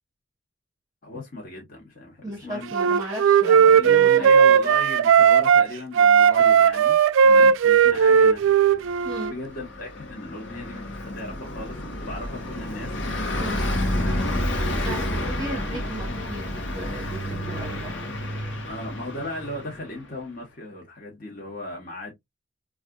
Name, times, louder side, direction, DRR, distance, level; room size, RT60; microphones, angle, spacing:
voice 1, 1.0-2.7 3.7-7.0 7.2-8.5 9.3-12.9 13.7-15.6 18.7-22.1, left 1 dB, 45° left, 1.1 m, -37 dB
voice 2, 2.2-4.7 7.2-7.5 9.0-9.3 13.4-13.6 14.8-18.2, right 1 dB, 15° right, 0.9 m, -36 dB
Wind instrument woodwind instrument, 2.7-5.7 6.0-9.3, right 7 dB, 75° right, 0.3 m, -16 dB
Car passing by, 8.9-19.9, left 1 dB, 70° left, 1.0 m, -30 dB
4.1 x 2.4 x 2.3 m
head